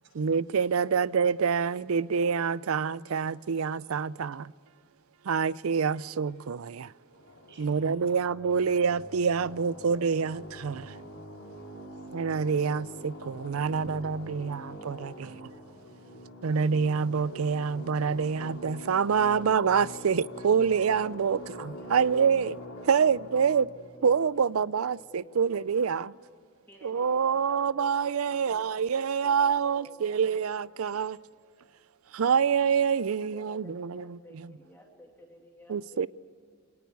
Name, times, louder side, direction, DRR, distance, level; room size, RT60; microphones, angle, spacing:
voice 1, 0.1-4.5 5.2-6.9 7.6-11.0 12.1-15.4 16.4-22.6 22.9-23.7 24.0-26.1 26.8-31.2 32.1-34.5 35.7-36.1, right 6 dB, 90° right, 0.5 m, -26 dB
sound 1, 7.1-25.2, equal, 90° left, 3.4 m, -45 dB
voice 2, 7.5-8.2 10.7-12.1 15.2-15.5 16.0-16.3 19.3-19.4, right 2 dB, 60° right, 7.3 m, -60 dB
voice 3, 21.2-25.9 26.7-30.5 33.3-36.1, equal, 10° left, 2.6 m, -54 dB
24.5 x 18.5 x 8.3 m
head